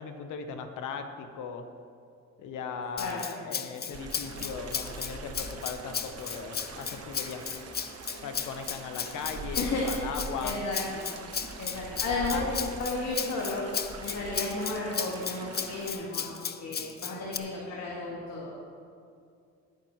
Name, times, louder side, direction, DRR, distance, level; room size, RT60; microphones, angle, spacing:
voice 1, 0.0-1.7 2.4-7.6 8.2-10.6 12.3-12.5, left 5 dB, 85° left, 6 dB, 1.1 m, -38 dB
Rattle (instrument), 3.0-17.4, left 7 dB, 35° left, 0.6 m, -35 dB
sound 1, 3.9-15.9, right 3 dB, 55° right, 1.2 m, -42 dB
voice 2, 10.4-11.0 11.6-13.6 14.0-16.3 16.6-18.5, left 3 dB, 65° left, -4 dB, 2.0 m, -33 dB
18.0 x 9.0 x 3.2 m, 2.4 s
cardioid pair, 90°, 30 cm